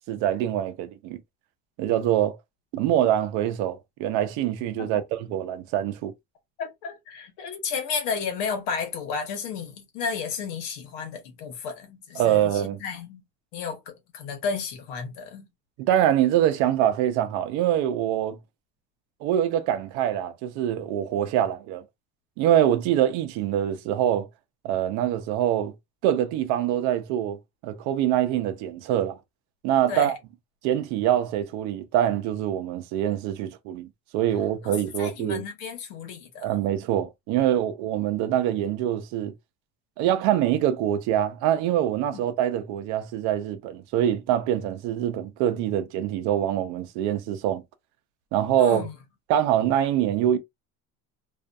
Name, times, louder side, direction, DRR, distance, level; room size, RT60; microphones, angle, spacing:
voice 1, 0.1-1.2 1.8-2.4 2.7-6.1 12.2-12.8 15.8-18.4 19.2-21.8 22.4-24.3 24.6-25.7 26.0-27.4 27.6-29.2 29.6-30.2 30.6-33.9 34.1-35.4 36.4-39.3 40.0-47.6 48.3-48.8 49.3-50.4, right 11 dB, 70° right, 0.6 m, -24 dB
voice 2, 6.6-13.2 13.5-15.5 29.9-30.1 34.6-34.7 35.0-36.6 42.1-42.2 48.6-48.9, left 6 dB, 80° left, 1.0 m, -33 dB
2.4 x 2.2 x 2.5 m
cardioid pair, 175°, 30 cm